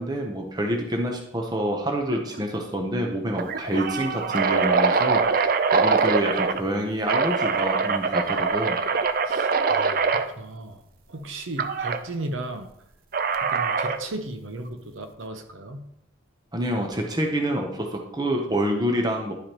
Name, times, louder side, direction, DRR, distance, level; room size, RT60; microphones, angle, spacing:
voice 1, 0.0-8.8 16.5-19.3, right 1 dB, 20° right, 2 dB, 0.7 m, -27 dB
sound 1, 2.1-2.4 2.7-2.8 3.3-6.6 7.1-10.3 11.6-12.0 13.1-14.1, right 5 dB, 45° right, 0.4 m, -23 dB
voice 2, 9.2-10.8 11.1-12.7 13.4-15.9, right 2 dB, 85° right, 7 dB, 0.8 m, -36 dB
10.5 x 4.9 x 2.9 m, 0.76 s
head